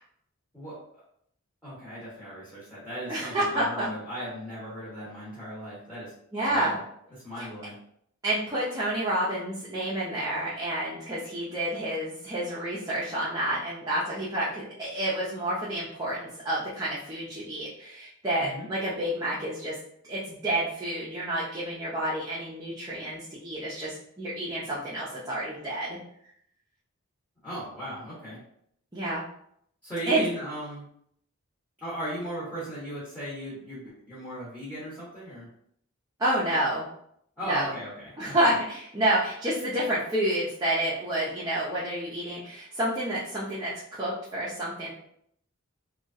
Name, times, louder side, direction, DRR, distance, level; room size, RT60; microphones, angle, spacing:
voice 1, 0.5-1.0 1.6-6.1 6.4-6.8 7.2-7.7 18.4-18.7 27.4-28.4 29.8-30.8 31.8-35.5 37.4-38.4, equal, 5° left, -11 dB, 1.0 m, -37 dB
voice 2, 3.1-3.9 6.3-6.7 7.4-7.5 8.2-19.8 20.0-26.0 28.9-29.2 30.1-30.2 36.2-36.9 37.4-37.7 38.2-44.9, right 1 dB, 15° right, -8 dB, 0.5 m, -29 dB
2.9 x 2.3 x 2.6 m, 0.68 s
head